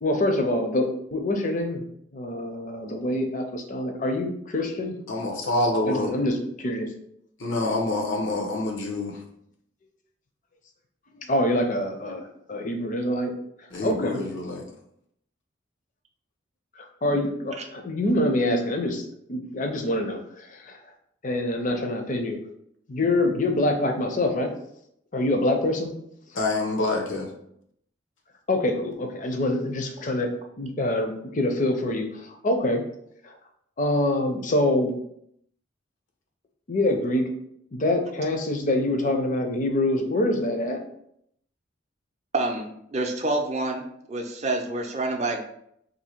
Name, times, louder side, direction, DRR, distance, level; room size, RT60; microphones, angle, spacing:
voice 1, 0.0-1.8 2.1-4.9 5.8-6.9 11.3-13.3 13.8-14.2 16.8-19.0 19.3-20.8 21.2-22.4 22.9-24.5 25.1-26.0 28.5-30.3 30.6-32.8 33.2-33.4 33.8-34.9 36.7-37.2 37.7-40.8, left 1 dB, 40° left, 4 dB, 0.5 m, -25 dB
voice 2, 5.1-6.1 7.4-9.2 13.7-14.6 26.3-27.3, left 2 dB, 90° left, 1 dB, 0.8 m, -26 dB
voice 3, 42.3-43.8 44.1-45.4, right 2 dB, 35° right, 3 dB, 0.5 m, -27 dB
2.7 x 2.6 x 4.3 m, 0.73 s
head